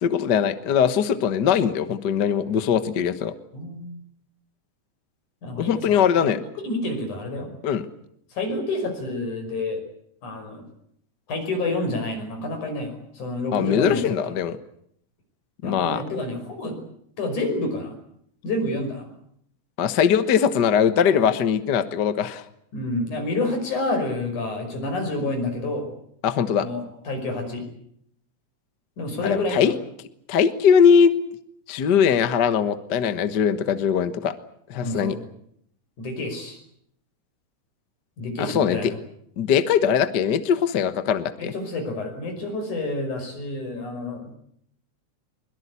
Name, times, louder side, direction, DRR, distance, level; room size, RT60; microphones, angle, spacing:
voice 1, 0.0-3.3 5.6-6.4 7.6-7.8 13.5-14.6 15.6-16.0 19.8-22.4 26.2-26.7 29.2-29.8 30.3-31.1 31.7-34.3 34.7-35.1 38.4-38.9 39.4-41.5, left 7 dB, 50° left, 11 dB, 1.3 m, -21 dB
voice 2, 3.5-4.0 5.4-7.5 8.3-9.8 10.2-10.6 11.3-14.0 15.6-16.8 17.2-17.9 18.4-19.1 22.7-25.9 26.6-27.6 29.0-29.7 34.8-35.2 36.0-36.6 38.2-39.0 41.4-44.3, left 2 dB, 75° left, 5 dB, 6.9 m, -29 dB
23.0 x 22.0 x 8.3 m, 0.69 s
omnidirectional pair, 3.5 m